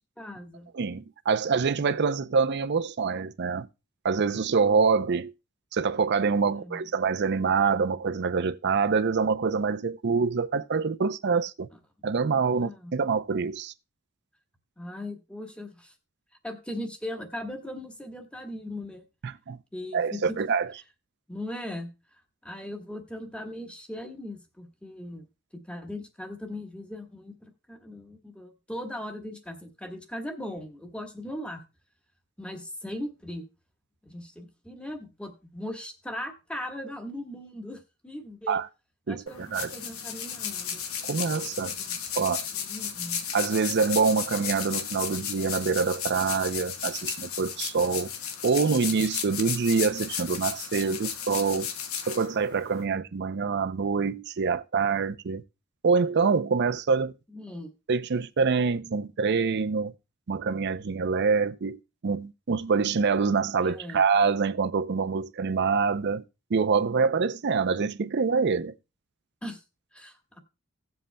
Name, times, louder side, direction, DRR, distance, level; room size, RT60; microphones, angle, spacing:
voice 1, 0.2-0.7 6.5-6.8 12.5-13.0 14.8-15.9 16.4-19.0 19.7-20.4 21.3-21.9 22.4-25.2 25.5-31.6 32.4-33.5 34.0-38.6 39.1-40.8 41.6-42.0 42.2-43.2 57.3-57.7 63.6-64.0 69.4-69.6 69.9-70.4, left 1 dB, 5° left, 1.3 m, -39 dB
voice 2, 0.7-3.7 4.0-5.3 5.7-11.7 12.0-13.7 19.2-19.6 19.9-20.7 38.5-38.7 39.1-39.7 41.0-41.8 42.1-42.5 43.3-48.1 48.4-51.7 52.1-55.4 55.8-57.1 57.9-59.9 60.3-66.2 66.5-68.7, right 5 dB, 55° right, 0.5 m, -25 dB
sound 1, 39.3-52.8, left 8 dB, 85° left, 1.1 m, -34 dB
17.5 x 7.6 x 2.2 m
head